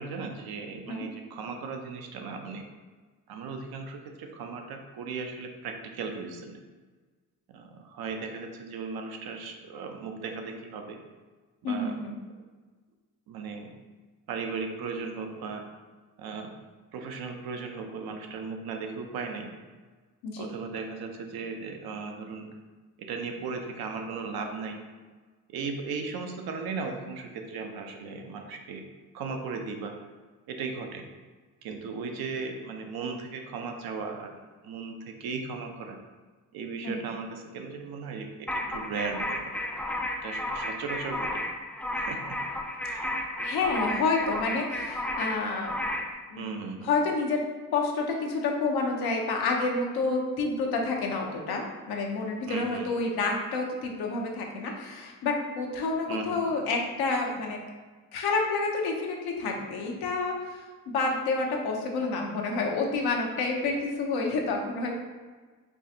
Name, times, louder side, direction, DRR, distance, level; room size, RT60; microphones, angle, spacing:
voice 1, 0.0-2.6 3.3-6.6 7.5-11.0 11.6-12.0 13.3-13.8 14.3-15.6 16.2-16.5 16.9-19.5 20.4-22.5 23.0-24.8 25.5-28.8 29.1-29.9 30.5-31.0 31.6-36.0 36.5-39.4 40.2-41.5 41.9-42.4 42.8-43.2 46.4-46.9 52.5-53.0 56.1-56.4, right 4 dB, 80° right, 4 dB, 0.6 m, -37 dB
voice 2, 11.6-12.2 20.2-20.5 36.8-37.0 43.4-45.8 46.3-46.5 46.8-47.4 47.7-57.6 58.1-60.4 60.9-65.0, left 3 dB, 90° left, 1 dB, 0.7 m, -29 dB
sound 1, 38.5-46.1, left 1 dB, 5° left, 0.4 m, -33 dB
4.5 x 2.5 x 2.7 m, 1.4 s
cardioid pair, 65°, 37 cm